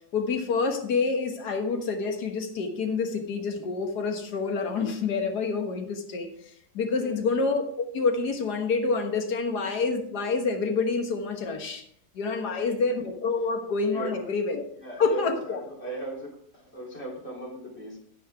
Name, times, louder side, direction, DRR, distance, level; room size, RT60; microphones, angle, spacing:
voice 1, 0.1-6.3 6.7-11.8 12.1-14.6 15.0-15.6, left 4 dB, 60° left, 4 dB, 2.0 m, -27 dB
voice 2, 12.4-12.8 13.9-14.2 14.8-18.0, right 2 dB, 35° left, -3 dB, 3.7 m, -38 dB
11.0 x 10.0 x 3.5 m, 0.67 s
omnidirectional pair, 2.0 m